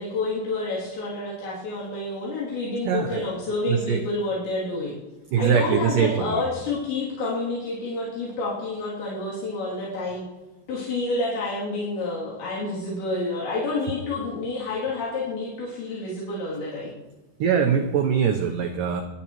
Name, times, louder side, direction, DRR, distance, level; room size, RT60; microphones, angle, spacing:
voice 1, 0.0-5.0 5.4-10.3 10.7-17.0, left 2 dB, 85° left, -8 dB, 5.3 m, -29 dB
voice 2, 2.8-4.0 5.3-6.4 17.4-19.0, right 7 dB, 85° right, 4 dB, 1.9 m, -23 dB
27.5 x 11.0 x 3.1 m, 1.1 s
omnidirectional pair, 5.0 m